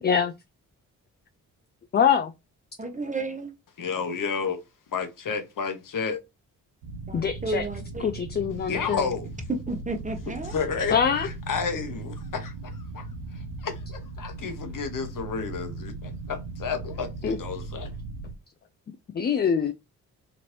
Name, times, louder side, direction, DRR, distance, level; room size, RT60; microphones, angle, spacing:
voice 1, 0.0-0.3 1.9-2.3 7.1-7.6 8.0-9.1 10.9-11.3 17.2-17.4 19.1-19.7, left 7 dB, 25° left, 0.4 m, -24 dB
voice 2, 2.8-3.5 7.1-8.1 9.5-10.5, right 2 dB, 20° right, 0.9 m, -32 dB
voice 3, 3.8-4.6 4.9-6.2 8.7-9.3 10.4-11.0 11.2-13.0 13.3-17.9, left 5 dB, 55° left, 0.9 m, -31 dB
sound 1, 6.8-18.3, right 3 dB, 85° right, 0.6 m, -38 dB
2.9 x 2.6 x 3.0 m
hypercardioid pair, 40°, 40 cm